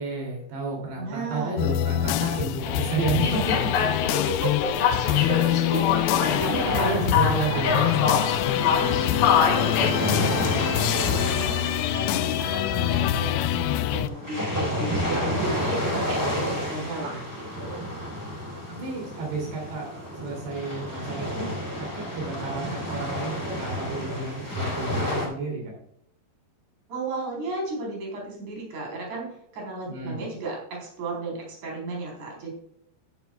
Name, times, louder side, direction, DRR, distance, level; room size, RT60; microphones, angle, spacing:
voice 1, 0.0-3.5 6.4-7.9 15.4-15.5 16.1-17.2 18.7-25.7 29.9-30.2, right 3 dB, 85° right, 0 dB, 5.0 m, -31 dB
voice 2, 0.9-1.5 4.1-7.6 8.7-11.6 11.9-17.9 22.4-22.8 26.9-29.3 29.5-32.5, right 2 dB, 45° right, -1 dB, 5.1 m, -34 dB
sound 1, 1.6-14.1, left 13 dB, 85° left, 2.2 m, -25 dB
sound 2, 3.2-9.9, left 6 dB, 65° left, 2.9 m, -25 dB
sound 3, 5.7-25.3, left 1 dB, 5° right, 2.9 m, -31 dB
12.5 x 10.5 x 2.3 m, 0.72 s
omnidirectional pair, 4.8 m